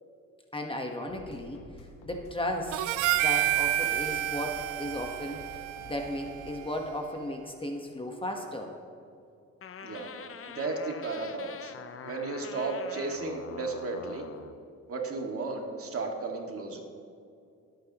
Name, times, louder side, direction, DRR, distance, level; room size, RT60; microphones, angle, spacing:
voice 1, 0.5-1.6 2.0-2.8 3.2-5.4 5.9-8.7, left 1 dB, 15° left, 3 dB, 1.3 m, -35 dB
sound 1, 1.1-6.7, left 3 dB, 85° left, 1.5 m, -50 dB
Harmonica, 2.7-7.2, right 15 dB, 85° right, 0.5 m, -30 dB
sound 2, 9.6-14.5, left 7 dB, 45° left, 0.8 m, -44 dB
voice 2, 10.5-11.7 12.0-14.2 14.9-16.8, right 3 dB, 50° right, 1 dB, 2.1 m, -34 dB
22.0 x 9.1 x 3.0 m, 2.5 s
cardioid pair, 90°, 30 cm